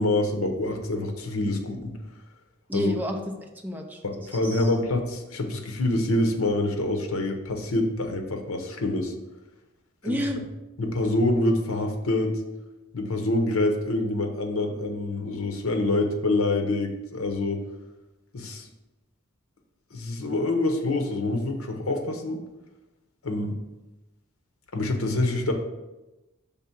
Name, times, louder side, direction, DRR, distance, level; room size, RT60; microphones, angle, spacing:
voice 1, 0.0-1.9 2.7-2.9 4.0-9.1 10.0-10.2 10.8-12.4 12.9-17.6 18.3-18.7 19.9-22.4 23.2-23.6 24.7-25.5, left 2 dB, 70° left, 4 dB, 0.9 m, -26 dB
voice 2, 2.7-4.7 10.0-10.4, equal, 10° right, 2 dB, 0.6 m, -31 dB
6.0 x 3.5 x 5.8 m, 1.0 s
head